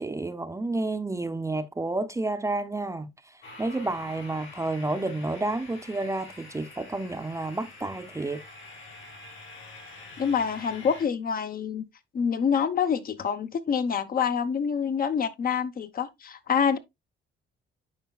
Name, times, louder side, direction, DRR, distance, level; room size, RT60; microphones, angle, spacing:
voice 1, 0.0-8.4, right 2 dB, 15° right, 0.6 m, -30 dB
sound 1, 3.4-11.1, left 2 dB, 75° left, 4.2 m, -46 dB
voice 2, 10.2-11.8 12.1-16.8, left 7 dB, 45° left, 0.8 m, -26 dB
9.2 x 5.1 x 2.3 m
cardioid pair, 90°, 20 cm